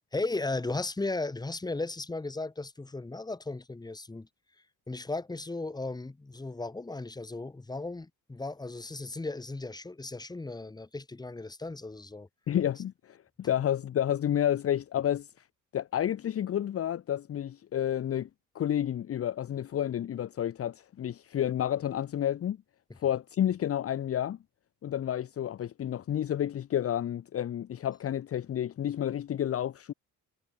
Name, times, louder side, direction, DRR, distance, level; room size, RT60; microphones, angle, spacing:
voice 1, 0.1-4.3 4.9-12.3, left 2 dB, 10° left, 2.7 m, -36 dB
voice 2, 12.5-15.3 15.7-18.3 18.5-22.6 23.0-24.4 24.8-29.9, left 10 dB, 40° left, 1.0 m, -30 dB
cardioid pair, 155°, 35 cm